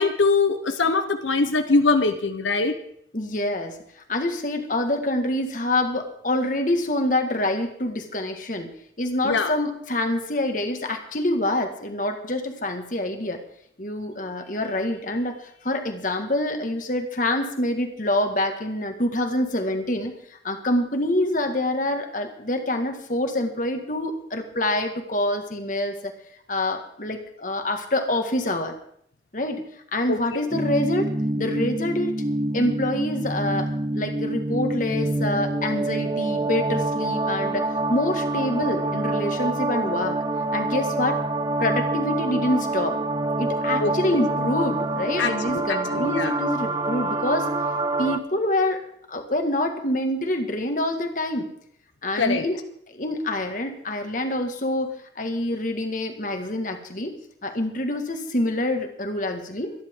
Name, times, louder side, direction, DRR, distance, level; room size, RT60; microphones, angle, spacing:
voice 1, 0.0-2.8 9.2-9.5 30.1-30.4 43.8-44.2 45.2-46.4 52.2-52.4, left 3 dB, 90° left, 7 dB, 1.0 m, -23 dB
voice 2, 3.1-3.8 4.1-8.7 9.0-13.4 13.8-20.1 20.4-26.1 26.5-28.8 29.3-29.6 29.9-32.2 32.5-40.2 40.5-41.2 41.6-43.0 43.4-47.5 48.0-48.8 49.1-51.5 52.0-52.6 52.9-57.2 57.4-59.7, left 1 dB, 45° left, 5 dB, 1.9 m, -26 dB
sound 1, 30.5-48.2, right 2 dB, 20° right, 0.6 m, -26 dB
25.0 x 10.5 x 3.8 m, 0.67 s
head